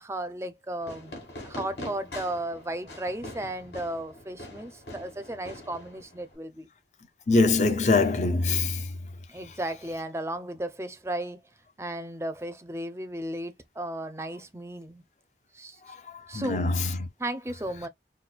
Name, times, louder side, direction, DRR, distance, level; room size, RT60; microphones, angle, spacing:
voice 1, 0.0-6.7 9.3-11.4 11.8-15.0 15.5-15.8 16.3-16.7 17.2-17.9, right 1 dB, 15° right, 0.5 m, -35 dB
Fireworks, 0.8-6.4, left 1 dB, 80° left, 2.3 m, -43 dB
voice 2, 7.3-8.8 16.3-17.1, left 3 dB, 40° left, 0.7 m, -23 dB
5.9 x 2.2 x 2.4 m
head